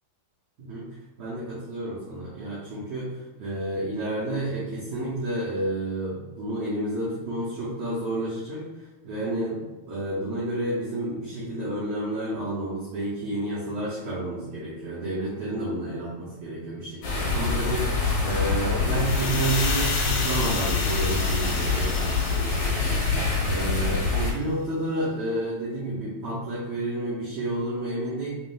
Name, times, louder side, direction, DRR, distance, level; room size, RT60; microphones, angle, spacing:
voice 1, 0.6-0.9 1.2-28.3, right 1 dB, 90° right, -9 dB, 1.6 m, -30 dB
sound 1, 17.0-24.3, left 4 dB, 55° left, 2.0 m, -25 dB
sound 2, 18.8-23.9, left 4 dB, 80° left, 3.0 m, -32 dB
7.1 x 2.6 x 2.3 m, 1.1 s
omnidirectional pair, 4.7 m